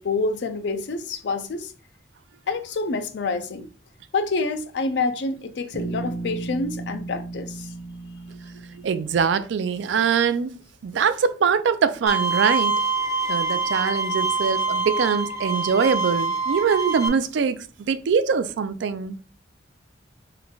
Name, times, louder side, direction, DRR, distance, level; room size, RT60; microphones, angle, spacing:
voice 1, 0.0-1.7 2.5-3.7 4.1-7.7, left 3 dB, 70° left, 0.4 m, -27 dB
Bass guitar, 5.7-9.8, right 3 dB, 50° left, 0.8 m, -35 dB
voice 2, 8.8-10.6 10.8-12.8 13.3-17.6 17.9-19.2, right 6 dB, 75° right, 0.4 m, -23 dB
Bowed string instrument, 12.1-17.1, right 4 dB, 15° right, 0.5 m, -25 dB
3.2 x 2.3 x 3.8 m
head